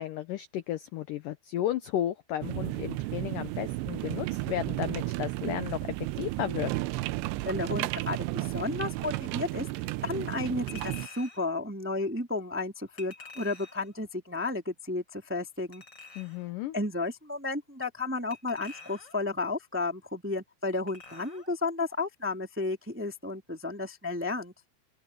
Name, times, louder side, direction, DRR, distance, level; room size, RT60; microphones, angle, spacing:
voice 1, 0.0-6.7 16.2-16.8, left 12 dB, 85° left, 1.9 m, -33 dB
sound 1, 2.4-11.1, right 19 dB, 90° right, 2.8 m, -33 dB
voice 2, 7.4-9.6 10.0-15.8 16.7-24.5, left 3 dB, 5° right, 1.2 m, -33 dB
Chink clink, 10.7-11.5 13.0-13.9 15.7-16.5 18.3-19.3 20.9-21.5 21.9-22.0, left 4 dB, 25° left, 7.0 m, -48 dB
open air
omnidirectional pair, 5.0 m